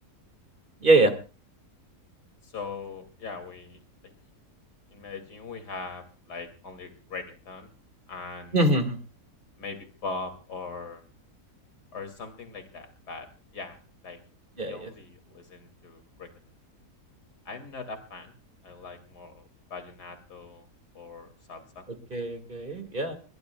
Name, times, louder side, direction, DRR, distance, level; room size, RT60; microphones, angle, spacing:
voice 1, 0.8-1.1 8.5-9.0 14.6-14.9 22.1-23.2, right 2 dB, 30° right, 7 dB, 2.2 m, -23 dB
voice 2, 2.4-4.1 4.9-7.7 8.1-8.6 9.6-11.0 11.9-13.3 13.5-14.2 14.6-16.3 17.4-18.3 18.6-20.7 20.9-21.8, left 4 dB, 80° left, 7 dB, 3.2 m, -40 dB
21.0 x 21.0 x 2.3 m, 0.35 s
omnidirectional pair, 1.7 m